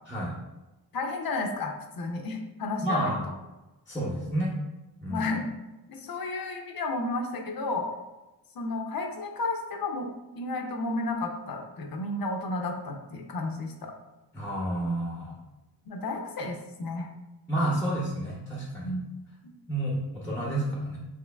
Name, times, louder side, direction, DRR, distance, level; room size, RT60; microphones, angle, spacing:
voice 1, 0.9-3.1 5.1-5.4 5.9-7.9 8.5-10.1 10.4-13.9 15.9-17.1 18.8-19.0, left 2 dB, 60° left, 2 dB, 0.6 m, -32 dB
voice 2, 2.8-3.2 3.9-4.5 5.0-5.3 14.3-15.3 17.5-18.9 19.7-21.0, right 1 dB, 5° left, -3 dB, 0.7 m, -30 dB
6.1 x 3.0 x 2.3 m, 1.0 s
wide cardioid pair, 155°, 41 cm